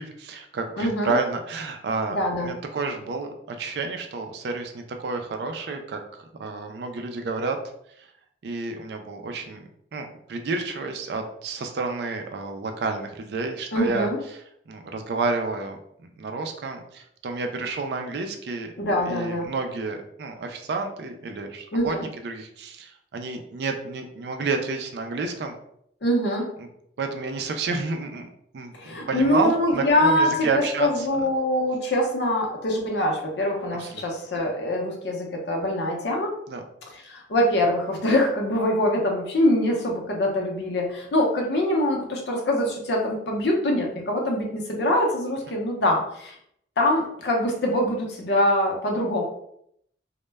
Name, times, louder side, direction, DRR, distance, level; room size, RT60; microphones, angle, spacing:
voice 1, 0.0-7.6 8.0-8.1 8.4-9.6 9.9-14.4 14.7-15.8 16.2-18.7 19.0-22.0 22.2-25.5 26.6-26.7 27.0-28.3 28.5-31.3 33.8-34.0 36.5-36.6, right 3 dB, 65° right, 5 dB, 0.3 m, -30 dB
voice 2, 0.8-1.1 2.1-2.5 13.7-14.2 18.8-19.5 21.7-22.1 26.0-26.5 28.7-36.3 36.9-46.4 46.8-49.2, left 1 dB, 70° left, 0 dB, 0.6 m, -24 dB
2.1 x 2.0 x 3.3 m, 0.72 s
head